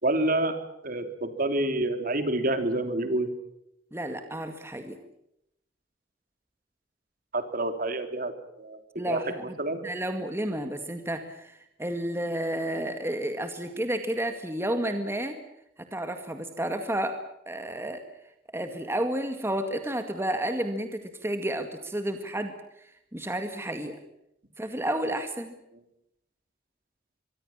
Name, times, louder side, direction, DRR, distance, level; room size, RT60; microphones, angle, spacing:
voice 1, 0.0-0.6 0.8-3.3 7.3-9.8, right 1 dB, 50° right, 8 dB, 3.3 m, -28 dB
voice 2, 3.9-5.0 9.0-9.6 9.8-15.4 15.9-17.2 17.5-18.0 18.5-24.0 24.6-25.5, right 1 dB, 15° right, 6 dB, 2.0 m, -31 dB
25.0 x 24.0 x 7.4 m, 0.80 s
head